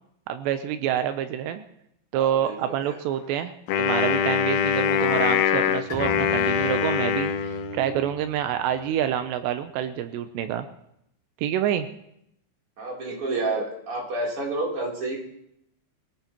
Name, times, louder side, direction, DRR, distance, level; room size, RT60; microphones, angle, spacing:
voice 1, 0.3-1.6 2.1-3.5 3.8-10.7 11.4-11.9, right 10 dB, 90° right, 9 dB, 2.4 m, -27 dB
voice 2, 2.1-3.0 12.8-15.2, right 2 dB, 30° right, -3 dB, 3.5 m, -30 dB
Wind instrument woodwind instrument, 3.7-8.1, left 8 dB, 80° left, 3.1 m, -23 dB
Bowed string instrument, 5.9-9.4, left 1 dB, 50° left, 3.1 m, -42 dB
24.0 x 15.5 x 3.0 m, 0.78 s
omnidirectional pair, 5.8 m